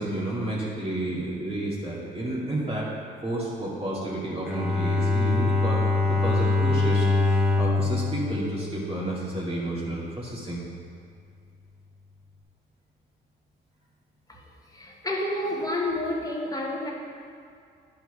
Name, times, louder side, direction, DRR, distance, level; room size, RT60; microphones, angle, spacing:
voice 1, 0.0-2.9 3.2-10.6, right 1 dB, 30° right, -6 dB, 2.3 m, -31 dB
Bowed string instrument, 4.4-9.4, left 3 dB, 5° right, 1.2 m, -24 dB
voice 2, 14.7-16.9, left 1 dB, 20° left, -2 dB, 1.4 m, -29 dB
10.5 x 4.6 x 4.9 m, 2.3 s
cardioid pair, 90°, 20 cm